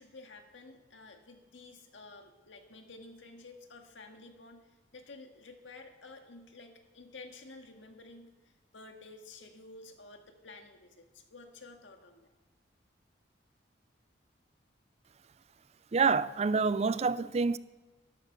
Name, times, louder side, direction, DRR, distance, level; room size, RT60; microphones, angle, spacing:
voice 1, 0.0-12.3, left 3 dB, 90° left, 1.8 m, -52 dB
voice 2, 15.9-17.6, right 4 dB, 35° right, 0.4 m, -27 dB
12.5 x 11.5 x 6.8 m
head